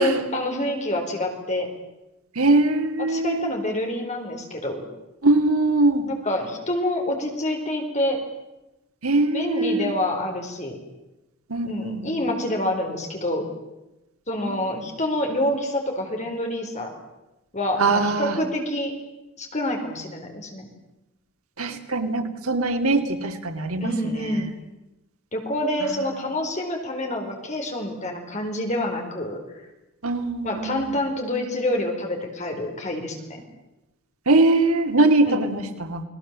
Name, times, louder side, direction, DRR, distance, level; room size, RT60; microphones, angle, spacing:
voice 1, 0.0-1.7 3.1-4.9 6.1-8.2 9.3-10.8 11.6-13.5 14.3-16.9 17.5-18.9 19.4-20.7 23.8-24.5 25.3-29.4 30.4-33.4 35.2-35.5, left 1 dB, 35° left, 2 dB, 4.5 m, -27 dB
voice 2, 2.3-3.5 5.2-6.1 9.0-9.9 11.5-12.2 17.8-18.4 21.6-24.4 25.8-25.9 30.0-31.0 34.3-36.0, right 2 dB, 85° right, 6 dB, 2.6 m, -22 dB
30.0 x 20.0 x 7.6 m, 0.99 s
head